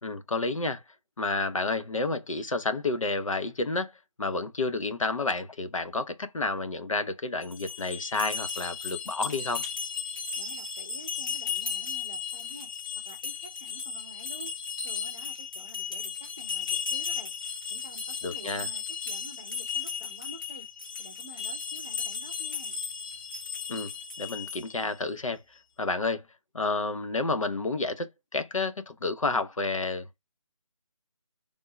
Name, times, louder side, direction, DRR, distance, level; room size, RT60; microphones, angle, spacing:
voice 1, 0.0-0.8 1.2-3.9 4.2-9.6 18.2-18.7 23.7-23.9 24.2-25.4 25.8-26.2 26.5-30.2, left 3 dB, 75° left, 0.8 m, -30 dB
sound 1, 7.4-24.9, left 6 dB, 40° left, 1.5 m, -35 dB
voice 2, 10.3-12.7 13.0-14.5 14.8-17.3 17.7-20.7 21.0-22.8, right 1 dB, 10° left, 0.3 m, -49 dB
3.5 x 2.6 x 3.0 m
figure-of-eight pair, 160°, 17 cm